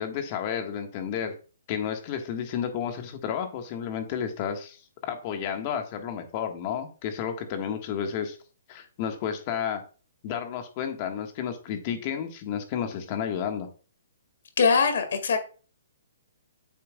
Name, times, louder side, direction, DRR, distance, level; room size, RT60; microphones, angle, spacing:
voice 1, 0.0-1.3 1.7-8.4 8.7-9.8 10.2-13.7, left 8 dB, 35° left, 1.5 m, -31 dB
voice 2, 14.6-15.4, left 5 dB, 70° left, 1.9 m, -22 dB
8.7 x 6.7 x 2.3 m
hypercardioid pair, 155°, 0 cm